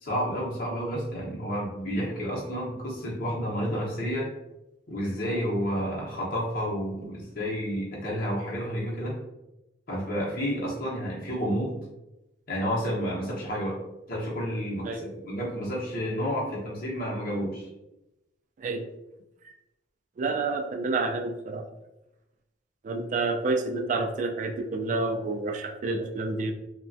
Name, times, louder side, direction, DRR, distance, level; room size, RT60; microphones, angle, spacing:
voice 1, 0.0-4.3 4.9-9.2 9.9-11.8 12.5-13.8 14.1-17.7, equal, 50° left, -5 dB, 0.8 m, -30 dB
voice 2, 20.2-21.7 22.8-26.5, right 3 dB, 40° right, 5 dB, 0.3 m, -29 dB
3.1 x 2.2 x 2.5 m, 0.94 s
head